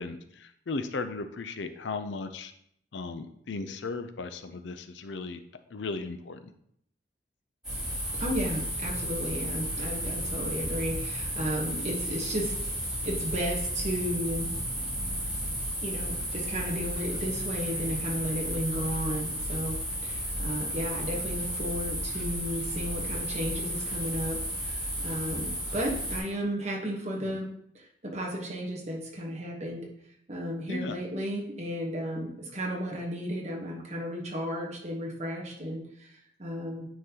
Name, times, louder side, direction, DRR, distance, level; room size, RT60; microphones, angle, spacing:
voice 1, 0.0-2.5 2.9-5.4 5.7-6.5 27.2-27.4 30.7-31.0, left 3 dB, 85° left, 10 dB, 0.5 m, -36 dB
sound 1, 7.6-26.2, equal, 5° right, 2.4 m, -33 dB
voice 2, 8.2-12.5 13.0-14.5 15.8-27.5 27.7-29.9 30.3-36.8, equal, 35° right, -1 dB, 1.2 m, -34 dB
9.3 x 3.9 x 2.9 m, 0.70 s
head